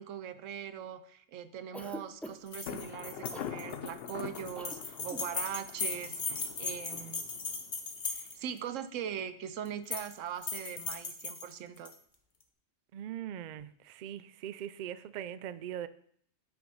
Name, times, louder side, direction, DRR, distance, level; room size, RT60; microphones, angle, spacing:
voice 1, 0.0-7.2 8.1-11.9, right 9 dB, 85° right, 12 dB, 1.1 m, -41 dB
Cough, 1.7-2.6 3.3-3.6 4.6-4.8 5.0-5.3, equal, ahead, 0.4 m, -44 dB
sound 1, 2.5-8.6 9.7-10.1 10.4-11.9, left 4 dB, 40° left, 1.2 m, -38 dB
Thunder, 2.7-8.3, left 8 dB, 60° left, 0.8 m, -44 dB
voice 2, 12.9-15.9, right 10 dB, 60° right, 15 dB, 0.5 m, -41 dB
8.7 x 5.9 x 5.5 m, 0.64 s
omnidirectional pair, 1.3 m